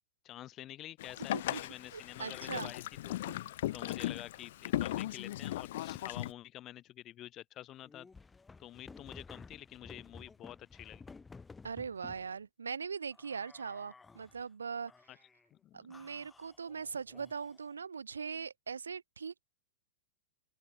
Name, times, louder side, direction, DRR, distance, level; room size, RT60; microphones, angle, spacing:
voice 1, 0.2-3.2 3.7-8.1 8.6-11.1 15.1-15.2 15.5-15.8, left 13 dB, 35° left, 0.9 m, -48 dB
Boat Water vehicle, 1.0-6.3, left 14 dB, 60° left, 0.3 m, -37 dB
voice 2, 1.3-1.6 1.9-2.7 3.3-3.4 11.6-14.9 15.7-19.4, right 6 dB, 80° right, 0.7 m, -41 dB
sound 1, 7.8-12.3 13.1-14.4 14.9-15.5 15.9-17.7, left 4 dB, 10° left, 3.2 m, -54 dB
open air
figure-of-eight pair, 100°, 0 cm